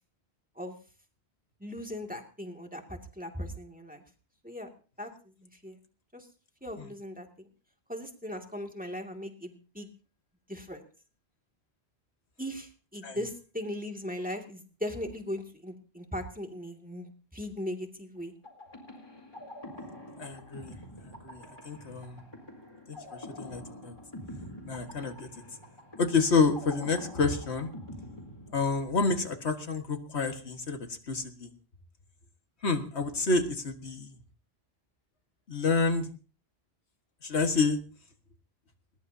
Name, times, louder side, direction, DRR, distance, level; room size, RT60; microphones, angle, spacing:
voice 1, 1.6-4.0 4.4-4.7 5.0-5.1 5.4-5.8 6.1-6.3 6.6-7.3 7.9-9.9 10.5-10.8 12.4-18.3, left 1 dB, 10° right, 3 dB, 2.3 m, -38 dB
sound 1, 18.4-29.1, left 1 dB, 25° left, 4.6 m, -46 dB
voice 2, 20.2-20.8 21.1-22.2 22.9-24.0 24.6-25.3 26.0-27.7 28.5-31.5 32.6-34.2 35.5-36.1 37.2-37.8, left 4 dB, 90° left, 6 dB, 2.0 m, -29 dB
21.0 x 20.5 x 2.8 m, 0.37 s
omnidirectional pair, 1.1 m